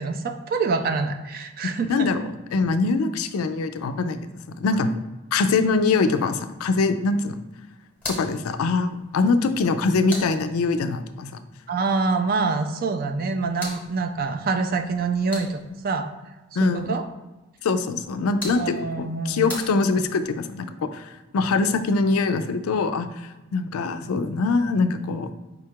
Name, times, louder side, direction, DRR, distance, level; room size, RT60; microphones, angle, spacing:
voice 1, 0.0-2.1 11.7-16.1 16.6-17.0 18.6-19.5, right 4 dB, 45° right, 7 dB, 0.3 m, -26 dB
voice 2, 1.9-4.2 4.6-4.9 5.3-7.4 8.1-11.3 16.6-17.0 17.6-25.3, left 3 dB, 90° left, 10 dB, 0.4 m, -23 dB
sound 1, 7.9-11.0 13.0-15.9 17.9-20.4, left 2 dB, 5° left, 0.9 m, -40 dB
5.0 x 2.3 x 4.5 m, 1.1 s
head